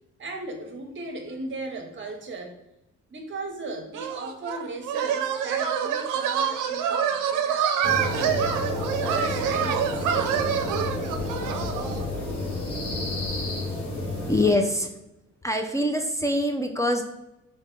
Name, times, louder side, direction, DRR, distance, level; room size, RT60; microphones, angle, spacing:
voice 1, 0.2-2.6 3.1-8.5 9.0-10.5, right 3 dB, 40° right, 5 dB, 0.8 m, -37 dB
sound 1, 3.9-12.1, right 8 dB, 85° right, 0.5 m, -26 dB
sound 2, 7.8-14.5, left 2 dB, 85° left, 1.2 m, -30 dB
voice 2, 14.0-14.9 15.4-17.0, left 1 dB, 10° left, 4 dB, 0.4 m, -24 dB
3.4 x 2.7 x 3.7 m, 0.91 s
cardioid pair, 90°, 30 cm